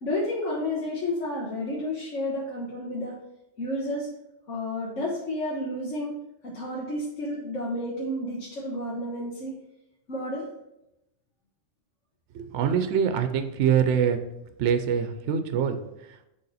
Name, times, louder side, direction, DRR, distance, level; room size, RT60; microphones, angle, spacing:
voice 1, 0.0-3.1 3.6-4.1 4.5-6.1 6.4-9.5 10.1-10.5, left 1 dB, 90° left, -5 dB, 1.4 m, -31 dB
voice 2, 12.3-14.2 14.6-16.3, right 7 dB, 75° right, 8 dB, 0.9 m, -25 dB
6.7 x 3.6 x 4.1 m, 0.88 s
omnidirectional pair, 1.2 m